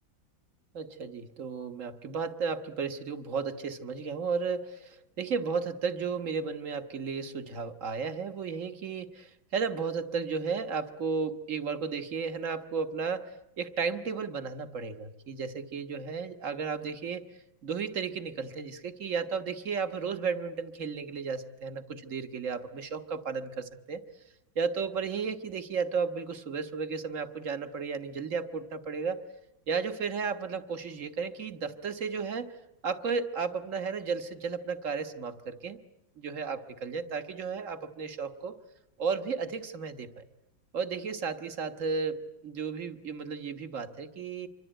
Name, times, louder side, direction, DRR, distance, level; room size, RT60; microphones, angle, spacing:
voice 1, 0.7-17.2 17.6-24.0 24.5-29.2 29.7-32.5 32.8-35.8 36.2-38.6 39.0-40.2 40.7-44.5, right 5 dB, 45° right, 9 dB, 1.7 m, -34 dB
26.5 x 24.0 x 9.0 m, 0.85 s
omnidirectional pair, 2.0 m